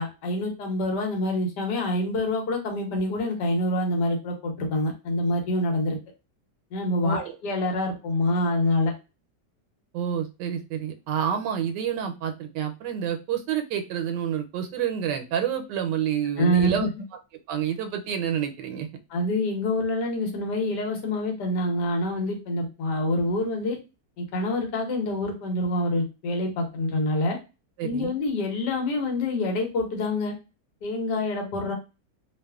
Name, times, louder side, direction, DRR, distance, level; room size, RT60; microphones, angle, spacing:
voice 1, 0.0-6.0 6.7-8.9 16.4-16.9 19.1-23.8 24.2-27.4 27.8-30.3 30.8-31.7, left 1 dB, 80° left, 2 dB, 1.3 m, -26 dB
voice 2, 7.0-7.4 9.9-16.9 17.5-18.9 27.8-28.1, right 9 dB, 90° right, 6 dB, 1.2 m, -28 dB
2.8 x 2.4 x 2.3 m, 0.28 s
omnidirectional pair, 1.8 m